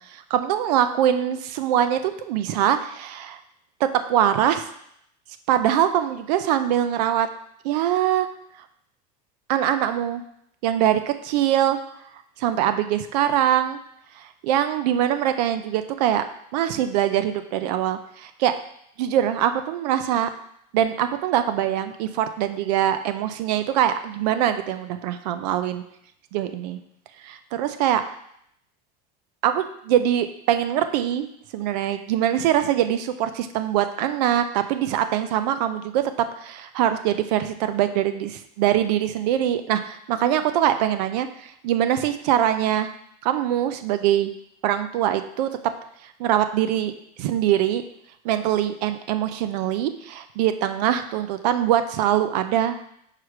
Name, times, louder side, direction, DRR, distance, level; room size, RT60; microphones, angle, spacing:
voice 1, 0.0-3.4 3.8-4.7 5.5-7.3 7.6-8.3 9.5-10.2 10.6-11.8 12.4-13.8 14.2-16.2 16.5-18.5 19.0-20.3 20.7-25.8 26.3-26.8 27.2-28.0 29.4-31.3 31.5-36.0 36.4-42.9 43.2-44.3 44.6-45.5 46.2-46.9 47.2-47.8 48.2-52.8, right 11 dB, 75° right, 10 dB, 0.5 m, -23 dB
6.0 x 4.8 x 4.8 m, 0.72 s
cardioid pair, 180°, 21 cm